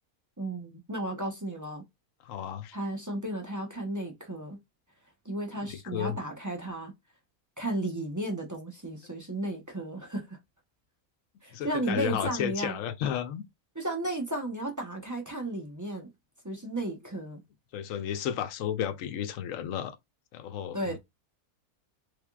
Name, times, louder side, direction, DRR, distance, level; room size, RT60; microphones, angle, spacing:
voice 1, 0.4-1.8 2.7-4.6 5.2-6.9 7.6-10.4 11.4-12.8 13.7-16.1 16.4-17.4 20.7-21.0, right 1 dB, 20° right, 0.5 m, -34 dB
voice 2, 2.2-2.8 5.6-6.2 11.5-13.4 17.7-20.0 20.3-21.0, left 9 dB, 70° left, 0.9 m, -33 dB
3.5 x 3.3 x 2.3 m
omnidirectional pair, 1.6 m